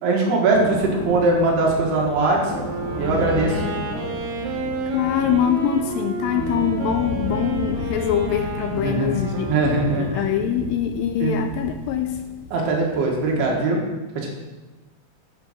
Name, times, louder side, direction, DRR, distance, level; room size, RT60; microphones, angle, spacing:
voice 1, 0.0-2.4 3.0-3.6 8.7-9.2 9.5-10.3 11.2-11.4 12.5-13.8 14.2-14.3, right 3 dB, 90° right, -1 dB, 3.6 m, -21 dB
Thunder, 0.5-13.6, left 3 dB, 60° left, 2.7 m, -33 dB
Wind instrument woodwind instrument, 2.4-10.5, right 3 dB, 70° right, 2.4 m, -31 dB
voice 2, 4.9-9.5 9.9-12.2, left 9 dB, 80° left, 6 dB, 2.1 m, -23 dB
10.0 x 5.4 x 6.0 m, 1.2 s
omnidirectional pair, 4.4 m